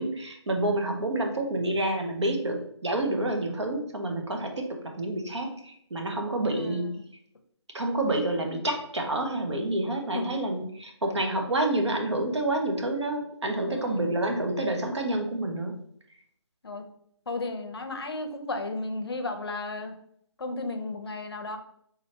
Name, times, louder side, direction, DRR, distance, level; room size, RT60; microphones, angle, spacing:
voice 1, 0.0-6.9 7.7-15.8, right 1 dB, 65° right, 3 dB, 1.0 m, -28 dB
voice 2, 6.5-7.1 10.1-10.4 11.1-11.3 13.6-14.1 16.6-16.8 17.3-20.0 20.4-21.6, left 2 dB, 55° left, 7 dB, 0.6 m, -34 dB
3.8 x 3.3 x 2.8 m, 0.68 s
hypercardioid pair, 175°, 15 cm